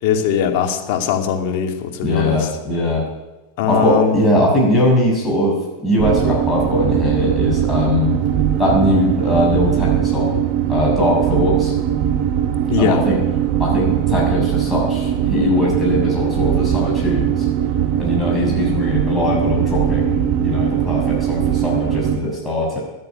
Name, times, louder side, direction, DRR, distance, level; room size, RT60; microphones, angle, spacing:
voice 1, 0.0-2.5 3.6-4.2 12.7-13.0, left 8 dB, 60° left, 4 dB, 2.6 m, -20 dB
voice 2, 2.0-3.0 3.7-5.6 5.8-8.2 8.6-10.4 10.7-11.7 12.8-13.2 13.6-17.5 18.0-22.8, left 1 dB, 15° left, -3 dB, 6.9 m, -20 dB
sound 1, 6.0-22.2, right 10 dB, 45° right, 1.3 m, -20 dB
15.0 x 9.5 x 9.6 m, 1.1 s
hypercardioid pair, 100°, 0 cm